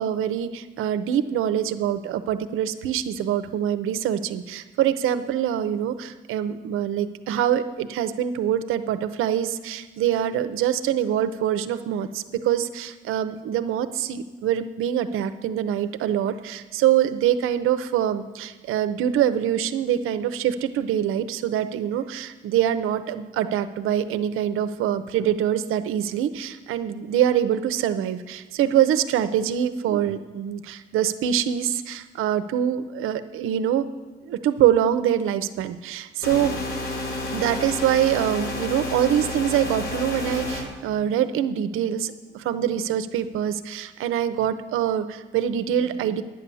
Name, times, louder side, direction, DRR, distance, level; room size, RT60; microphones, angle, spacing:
voice 1, 0.0-33.8 34.2-36.8 37.3-46.2, right 10 dB, 80° right, 12 dB, 0.7 m, -24 dB
sound 1, 36.2-40.6, left 2 dB, 80° left, 3.1 m, -30 dB
9.5 x 9.2 x 6.9 m, 1.3 s
cardioid pair, 85°, 21 cm